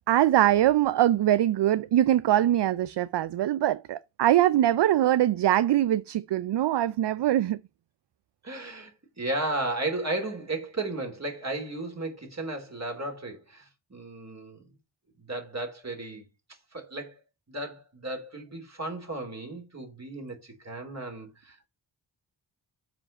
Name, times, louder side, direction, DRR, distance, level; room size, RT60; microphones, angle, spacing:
voice 1, 0.1-7.6, right 12 dB, 65° right, 0.5 m, -23 dB
voice 2, 8.4-14.7 15.2-16.3 16.7-17.2 17.5-21.7, right 2 dB, 35° right, 3.7 m, -34 dB
7.4 x 5.1 x 6.0 m
cardioid pair, 45°, 45 cm